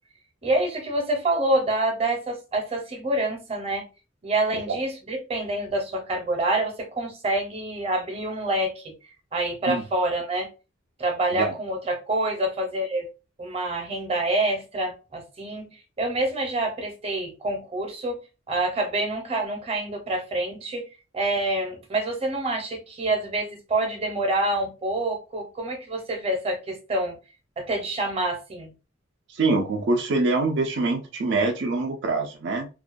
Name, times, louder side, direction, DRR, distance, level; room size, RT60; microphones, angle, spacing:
voice 1, 0.4-3.9 4.2-8.9 9.3-10.5 11.0-13.1 13.4-18.2 18.5-20.9 21.1-27.2 27.6-28.7, right 2 dB, 30° right, 0.7 m, -27 dB
voice 2, 29.3-32.7, right 3 dB, 65° right, 0.4 m, -24 dB
2.3 x 2.2 x 2.4 m
head